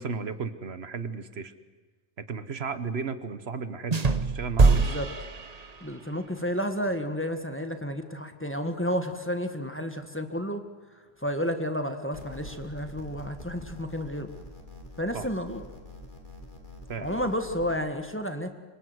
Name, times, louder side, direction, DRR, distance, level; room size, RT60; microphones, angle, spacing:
voice 1, 0.0-1.5 2.3-5.0 15.1-15.3 16.9-17.2, right 5 dB, 75° right, 11 dB, 1.4 m, -34 dB
sound 1, 3.9-6.1, right 4 dB, 40° right, 1.2 m, -24 dB
voice 2, 4.7-5.1 5.8-10.6 11.2-14.3 15.0-15.6 17.0-18.5, equal, 10° left, 6 dB, 1.6 m, -31 dB
sound 2, 12.1-17.8, left 1 dB, 50° left, 4.3 m, -45 dB
26.0 x 23.5 x 8.0 m, 1.4 s
omnidirectional pair, 1.1 m